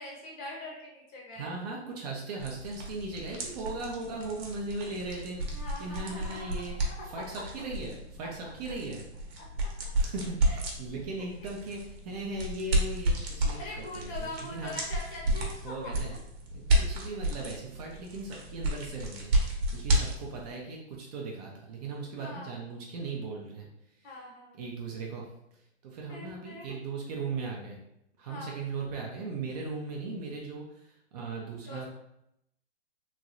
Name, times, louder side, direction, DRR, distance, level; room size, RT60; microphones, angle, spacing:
voice 1, 0.0-1.5 5.5-6.5 8.4-8.5 9.4-9.7 10.5-10.6 11.2-11.3 13.6-15.9 22.2-22.5 24.0-24.6 26.1-26.7 28.2-28.6 31.7-31.8, left 2 dB, 25° left, -2 dB, 0.8 m, -43 dB
voice 2, 1.4-9.0 10.0-14.8 15.6-16.1 16.5-24.2 24.6-27.8 28.2-31.8, right 3 dB, 35° right, -1 dB, 0.5 m, -38 dB
Wet Squishy sound, 2.4-20.5, right 1 dB, 60° right, 0.9 m, -32 dB
3.0 x 2.6 x 2.5 m, 0.80 s
hypercardioid pair, 135°, 35 cm